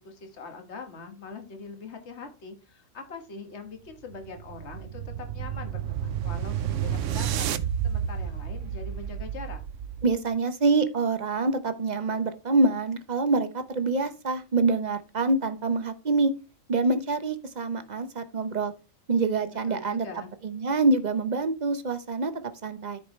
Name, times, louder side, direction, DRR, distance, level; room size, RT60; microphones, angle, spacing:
voice 1, 0.0-7.5 7.8-9.6 19.7-20.3, left 4 dB, 55° left, 5 dB, 1.7 m, -42 dB
sound 1, 3.9-10.2, right 9 dB, 70° right, 0.9 m, -31 dB
voice 2, 10.0-16.3 16.7-18.7 19.1-20.1 20.4-22.3 22.6-23.0, right 3 dB, 40° right, 9 dB, 0.8 m, -26 dB
13.5 x 4.8 x 3.2 m, 0.31 s
omnidirectional pair, 1.4 m